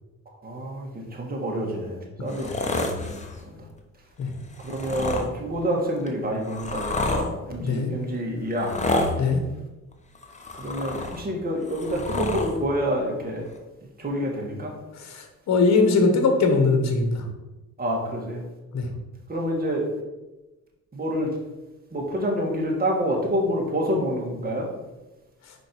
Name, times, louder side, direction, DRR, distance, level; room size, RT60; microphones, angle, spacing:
voice 1, 0.4-3.6 4.6-8.7 10.6-13.5 14.0-14.7 17.8-18.4 19.3-19.8 20.9-21.3 21.9-24.7, equal, 30° right, -1 dB, 1.9 m, -28 dB
sound 1, 2.3-3.4 4.5-5.3 6.1-7.3 8.6-9.2 10.2-11.3 11.6-12.5 13.6-13.7, left 2 dB, 25° left, 0.9 m, -28 dB
voice 2, 7.6-7.9 9.2-9.4 15.0-17.2 18.7-18.9, left 3 dB, 60° left, 4 dB, 1.4 m, -21 dB
5.1 x 5.1 x 4.6 m, 1.1 s
cardioid pair, 90°, 30 cm